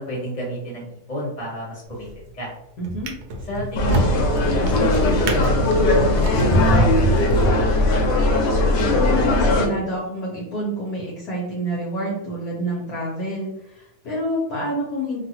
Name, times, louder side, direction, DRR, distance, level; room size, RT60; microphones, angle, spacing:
voice 1, 0.0-2.5 3.5-4.1 4.6-8.1, equal, 30° left, -5 dB, 1.2 m, -31 dB
Drawer open or close, 1.9-2.3 2.8-8.0 8.7-8.9, right 1 dB, 75° right, 1.1 m, -25 dB
voice 2, 2.8-3.1 8.7-15.2, equal, 65° left, -4 dB, 1.1 m, -27 dB
sound 1, 3.8-9.7, left 1 dB, 85° left, 1.2 m, -19 dB
2.9 x 2.5 x 2.8 m, 0.80 s
omnidirectional pair, 1.8 m